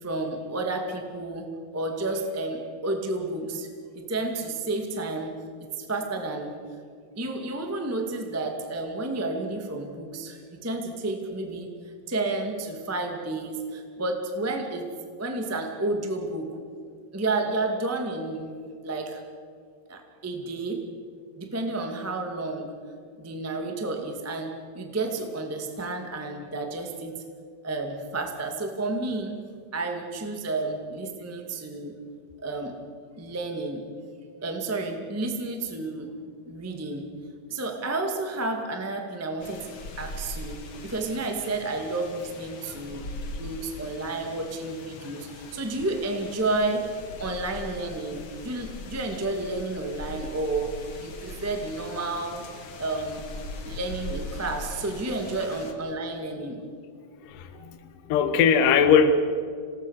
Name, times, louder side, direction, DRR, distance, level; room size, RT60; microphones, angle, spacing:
voice 1, 0.0-1.5 1.7-3.7 3.9-5.3 5.6-6.5 7.1-14.9 15.2-16.6 17.1-18.5 18.8-19.2 19.9-20.8 21.3-22.7 23.2-27.2 27.6-29.4 29.7-31.9 32.4-32.7 33.2-33.8 34.4-36.1 36.4-37.0 37.5-46.8 47.2-50.7 51.0-52.4 52.8-53.2 53.6-56.6, right 2 dB, 10° right, 3 dB, 0.7 m, -31 dB
sound 1, 39.4-55.7, left 2 dB, 45° left, 1.8 m, -41 dB
voice 2, 57.3-57.8 58.0-59.1, left 6 dB, 65° left, 8 dB, 2.3 m, -20 dB
27.5 x 18.5 x 6.6 m, 2.2 s
omnidirectional pair, 4.8 m